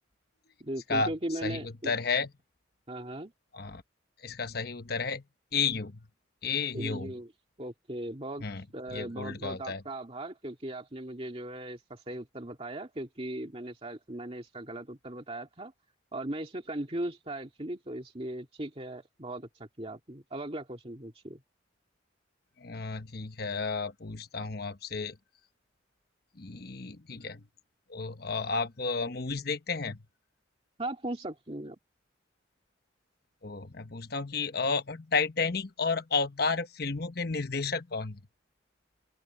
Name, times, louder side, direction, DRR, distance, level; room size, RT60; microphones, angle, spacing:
voice 1, 0.6-1.9 2.9-3.3 6.7-7.3 7.6-8.4 8.7-15.7 16.1-19.5 19.8-21.4 30.8-31.8, right 1 dB, 30° right, 2.3 m, -38 dB
voice 2, 1.4-2.3 3.5-3.8 4.2-5.2 5.5-6.0 6.4-7.1 8.4-8.6 8.9-9.8 22.6-25.2 26.4-27.4 27.9-30.0 33.4-38.2, left 4 dB, 50° left, 1.1 m, -32 dB
open air
head